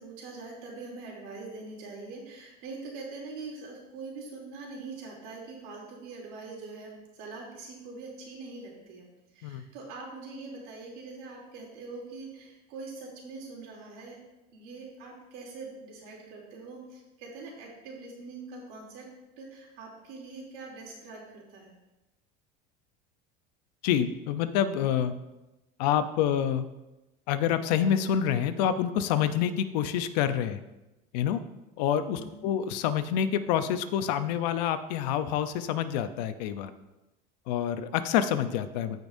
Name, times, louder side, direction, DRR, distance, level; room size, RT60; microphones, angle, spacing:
voice 1, 0.0-9.1 9.3-14.2 14.5-19.1 19.4-21.7 32.1-32.5, right 3 dB, 75° right, -3 dB, 3.1 m, -43 dB
voice 2, 23.8-25.1 25.8-26.7 27.3-30.6 31.1-31.4 31.8-36.7 37.5-39.0, left 9 dB, 85° left, 10 dB, 0.7 m, -27 dB
15.5 x 5.3 x 2.7 m, 1.0 s
cardioid pair, 145°, 21 cm